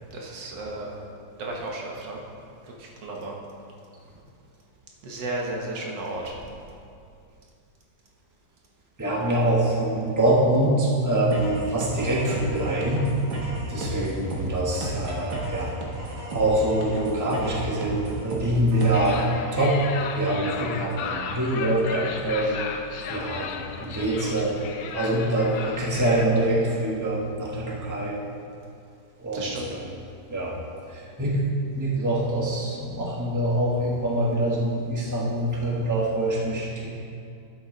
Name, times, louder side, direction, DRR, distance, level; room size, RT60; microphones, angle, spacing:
voice 1, 0.1-1.0 1.4-2.2 2.6-3.4 5.0-6.3 29.3-29.7, right 2 dB, 90° right, -1 dB, 1.8 m, -33 dB
voice 2, 9.0-13.1 13.7-15.7 16.3-19.8 20.2-22.7 23.1-24.6 24.9-28.2 29.2-29.8 30.3-30.6 30.9-31.4 31.7-36.9, right 1 dB, 10° right, -4 dB, 1.1 m, -25 dB
sound 1, 11.3-19.3, right 2 dB, 65° right, 1.9 m, -33 dB
sound 2, 18.9-26.3, left 6 dB, 85° left, 1.3 m, -35 dB
11.5 x 7.8 x 3.9 m, 2.5 s
omnidirectional pair, 1.9 m